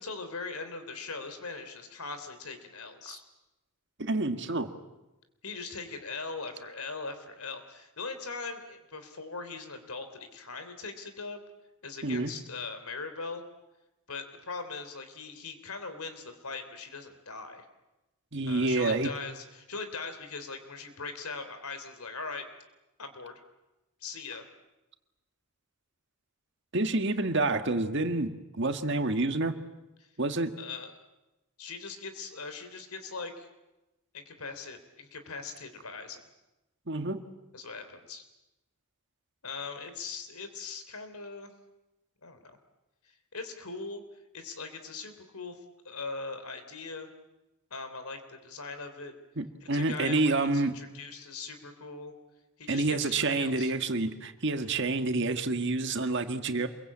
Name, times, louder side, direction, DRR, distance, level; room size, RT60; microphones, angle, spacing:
voice 1, 0.0-3.2 5.4-11.4 11.8-13.4 14.1-17.7 18.4-22.4 23.0-23.4 24.0-24.4 30.0-30.1 30.6-30.9 31.6-33.5 34.1-36.2 37.5-38.2 39.4-41.5 42.2-42.6 43.0-44.0 44.3-45.6 45.8-47.1 47.7-49.1 49.6-52.1 52.6-53.7, left 4 dB, 85° left, 9 dB, 3.3 m, -40 dB
voice 2, 4.0-4.7 12.0-12.3 18.3-19.1 26.7-28.3 28.6-29.5 30.2-30.5 36.9-37.3 49.4-50.7 52.7-56.7, right 2 dB, 55° right, 7 dB, 1.7 m, -28 dB
27.0 x 22.5 x 8.7 m, 1.0 s
head